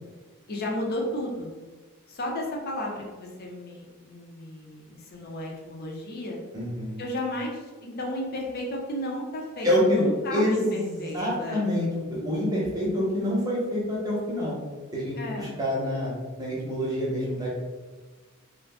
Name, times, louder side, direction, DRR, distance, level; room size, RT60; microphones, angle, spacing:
voice 1, 0.5-1.5 2.1-6.4 7.0-11.7 15.2-15.6, left 1 dB, 45° left, 0 dB, 0.5 m, -33 dB
voice 2, 6.5-7.0 9.6-10.0 10.3-14.6 14.9-16.1 16.4-17.5, left 1 dB, 15° right, -5 dB, 0.8 m, -26 dB
2.4 x 2.1 x 3.4 m, 1.3 s
head